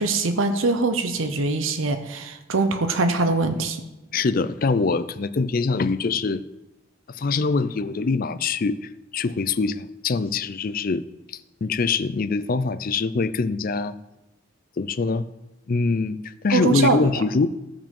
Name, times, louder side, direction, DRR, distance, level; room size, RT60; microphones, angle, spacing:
voice 1, 0.0-3.8 16.5-17.1, right 3 dB, 85° right, 8 dB, 0.8 m, -23 dB
voice 2, 4.1-6.4 7.1-11.1 11.6-13.9 14.8-15.3 15.7-17.5, left 4 dB, 45° left, 14 dB, 0.5 m, -24 dB
14.5 x 5.1 x 5.4 m, 0.98 s
head